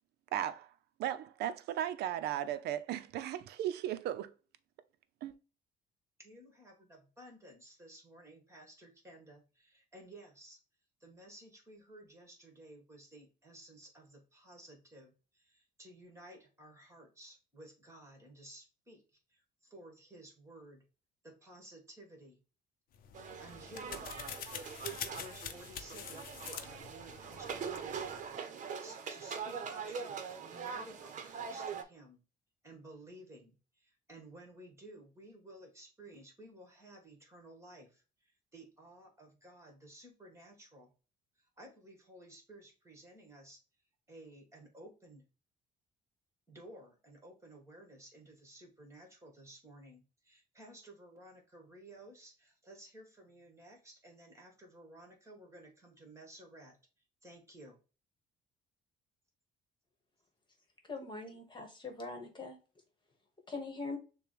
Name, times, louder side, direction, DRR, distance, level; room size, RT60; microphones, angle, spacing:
voice 1, 0.3-0.7 1.0-4.3 5.2-5.3, right 11 dB, 75° right, 0.6 m, -36 dB
voice 2, 6.2-10.6 11.0-19.0 19.3-20.8 21.2-22.4 23.4-24.1 25.1-28.1 28.6-32.2 32.6-40.9 41.3-43.6 44.1-45.3 46.5-56.8 57.2-57.8, right 1 dB, 15° right, 1.7 m, -55 dB
sound 1, 22.9-28.3, left 8 dB, 60° left, 0.6 m, -46 dB
sound 2, 23.1-31.8, right 6 dB, 45° right, 0.9 m, -42 dB
voice 3, 60.9-62.6 63.5-64.0, left 3 dB, 30° left, 1.4 m, -42 dB
6.7 x 2.3 x 3.2 m
cardioid pair, 110°, 17 cm